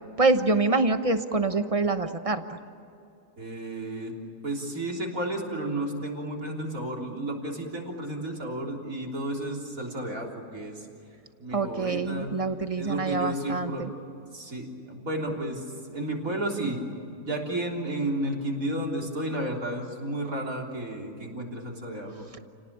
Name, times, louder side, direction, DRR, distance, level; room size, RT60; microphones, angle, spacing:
voice 1, 0.2-2.6 11.5-13.9, right 3 dB, 25° right, 9 dB, 0.9 m, -25 dB
voice 2, 3.4-4.2 4.4-10.9 11.4-12.4 12.8-13.9 14.3-16.8 17.2-22.3, right 1 dB, 55° right, -1 dB, 4.0 m, -32 dB
29.5 x 18.5 x 8.8 m, 2.6 s
omnidirectional pair, 1.7 m